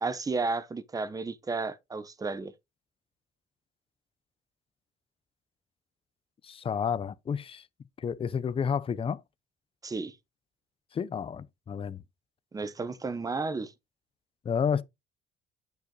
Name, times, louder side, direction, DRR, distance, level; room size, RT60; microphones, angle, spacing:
voice 1, 0.0-2.5 9.8-10.2 12.5-13.7, right 3 dB, 20° right, 1.0 m, -32 dB
voice 2, 6.4-7.6 8.0-9.2 10.9-12.0 14.4-14.8, left 7 dB, 35° left, 0.7 m, -30 dB
9.0 x 5.4 x 3.9 m
cardioid pair, 110°, 17 cm